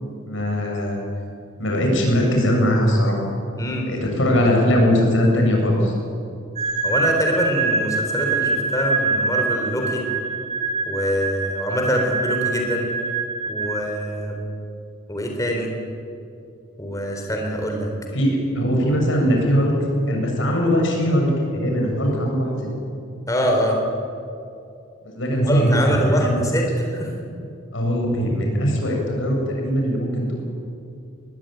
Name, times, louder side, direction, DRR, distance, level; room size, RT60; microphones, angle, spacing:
voice 1, 0.3-1.0 1.6-3.2 3.9-5.9 18.1-19.7 20.1-22.7 25.0-26.4 27.7-30.4, equal, 70° left, 0 dB, 7.4 m, -20 dB
sound 1, 6.6-14.2, right 3 dB, 35° right, 2.9 m, -25 dB
voice 2, 6.8-10.0 10.9-12.9 13.5-14.4 15.1-15.7 16.8-17.9 23.3-23.8 25.4-27.1, equal, 15° left, 1 dB, 3.9 m, -24 dB
21.5 x 21.0 x 9.3 m, 2.5 s
head